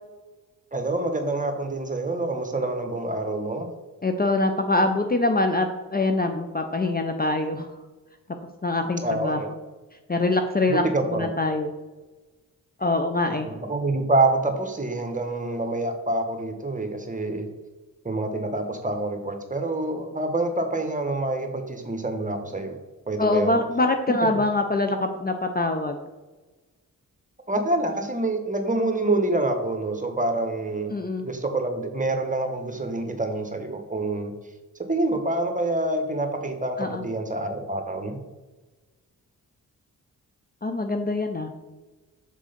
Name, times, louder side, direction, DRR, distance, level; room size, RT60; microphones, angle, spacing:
voice 1, 0.7-3.7 9.0-9.5 10.7-11.3 13.2-17.5 18.0-22.8 23.1-23.6 27.5-34.3 34.9-38.2, right 2 dB, 20° right, 5 dB, 1.4 m, -27 dB
voice 2, 4.0-7.7 8.6-9.4 10.1-10.8 11.1-11.7 12.8-13.5 23.2-26.0 30.9-31.3 36.8-37.0 40.6-41.5, left 2 dB, 25° left, 6 dB, 0.7 m, -24 dB
6.9 x 3.6 x 5.1 m, 1.2 s
cardioid pair, 50°, 35 cm